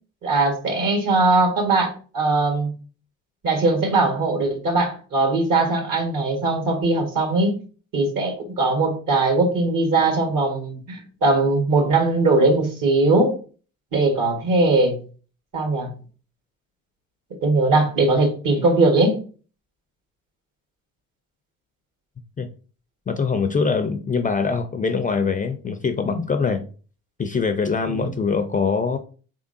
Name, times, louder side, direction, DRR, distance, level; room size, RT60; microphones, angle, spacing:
voice 1, 0.2-2.7 3.4-7.6 7.9-13.4 13.9-14.9 15.5-15.9 17.4-19.2 27.9-28.1, right 2 dB, 55° right, 4 dB, 1.5 m, -20 dB
voice 2, 23.1-26.6 27.2-29.0, left 5 dB, 20° left, 8 dB, 0.4 m, -23 dB
3.6 x 3.5 x 2.6 m, 0.38 s
hypercardioid pair, 60°, 39 cm